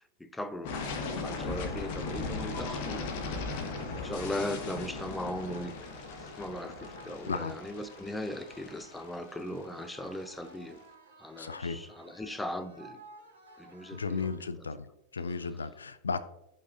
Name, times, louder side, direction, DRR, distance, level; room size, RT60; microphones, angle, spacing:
voice 1, 0.0-3.5 4.0-5.7 6.2-10.8 11.2-13.0 13.6-14.7 15.5-15.6, left 1 dB, 5° left, 0.6 m, -39 dB
sound 1, 0.6-10.5, left 3 dB, 50° left, 1.2 m, -38 dB
sound 2, 2.8-14.8, right 3 dB, 75° right, 3.1 m, -54 dB
voice 2, 11.4-11.8 13.9-14.8 15.1-16.2, left 4 dB, 75° left, 0.5 m, -34 dB
15.5 x 5.6 x 2.6 m
figure-of-eight pair, 90°, 0 cm